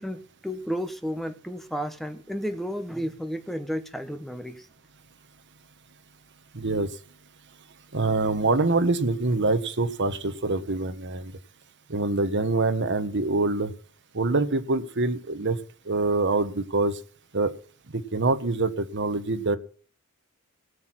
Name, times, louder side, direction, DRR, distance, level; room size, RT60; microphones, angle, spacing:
voice 1, 0.0-4.7, equal, ahead, 1.1 m, -32 dB
voice 2, 6.5-6.9 7.9-11.3 11.9-13.7 14.1-15.6 15.9-17.0 17.3-17.5 18.1-19.6, right 3 dB, 55° right, 1.3 m, -25 dB
17.5 x 6.3 x 7.5 m
head